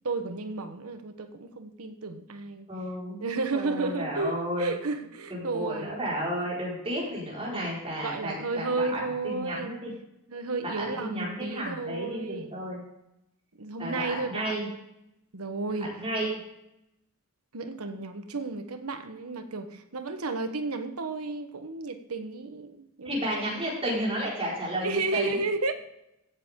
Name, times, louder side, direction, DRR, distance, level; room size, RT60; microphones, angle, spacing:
voice 1, 0.0-2.7 3.2-6.1 7.5-7.6 8.0-9.8 10.3-12.6 13.6-14.8 15.3-15.9 16.2-16.3 17.5-23.4 24.8-25.7, right 3 dB, 85° right, 8 dB, 1.1 m, -32 dB
voice 2, 2.7-3.2 3.5-4.7 5.3-8.7 8.9-9.9 10.8-12.8 13.8-14.7 16.0-16.3 23.0-25.4, equal, 25° right, -5 dB, 4.9 m, -32 dB
16.0 x 8.0 x 3.7 m, 0.85 s
head